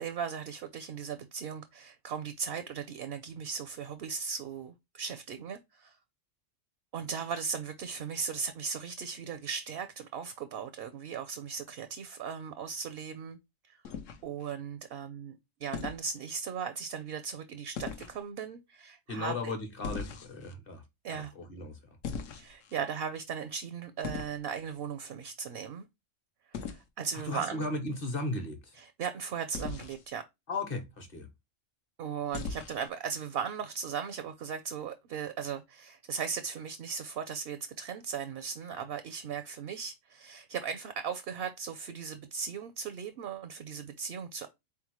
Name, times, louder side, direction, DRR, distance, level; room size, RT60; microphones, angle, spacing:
voice 1, 0.0-6.0 6.9-13.4 13.7-13.8 14.2-19.5 21.0-21.3 22.4-25.9 26.5-27.7 28.7-30.2 32.0-44.5, right 6 dB, 60° right, 0.7 m, -37 dB
sound 1, 13.8-14.5 15.7-16.1 17.7-18.2 19.8-20.5 22.0-22.7 24.0-24.4 26.5-26.8 29.5-30.0 32.3-32.9, left 6 dB, 75° left, 1.1 m, -39 dB
voice 2, 19.1-20.8 21.1-21.8 27.3-28.7 30.5-31.3, left 2 dB, 45° left, 1.2 m, -36 dB
4.3 x 3.6 x 3.0 m
omnidirectional pair, 1.3 m